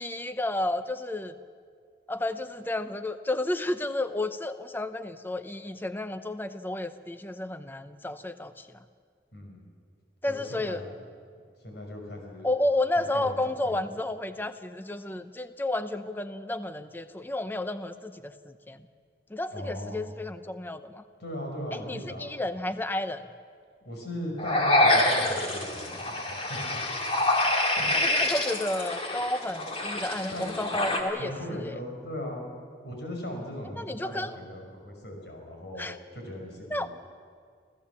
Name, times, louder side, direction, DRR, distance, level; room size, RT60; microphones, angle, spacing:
voice 1, 0.0-1.3 2.1-8.7 10.2-10.8 12.4-18.8 19.3-21.0 21.7-23.2 27.9-31.8 33.8-34.3 35.8-36.0 36.7-36.9, left 1 dB, 10° left, 11 dB, 0.6 m, -31 dB
voice 2, 9.3-9.7 10.3-10.9 11.6-12.5 13.0-13.9 19.5-20.0 21.2-22.3 23.8-26.8 27.8-27.9 30.3-30.6 31.2-32.6 32.8-36.9, equal, 65° left, 1 dB, 5.4 m, -38 dB
sound 1, 24.4-31.0, left 1 dB, 30° left, 2.1 m, -26 dB
27.5 x 15.5 x 7.2 m, 2.1 s
head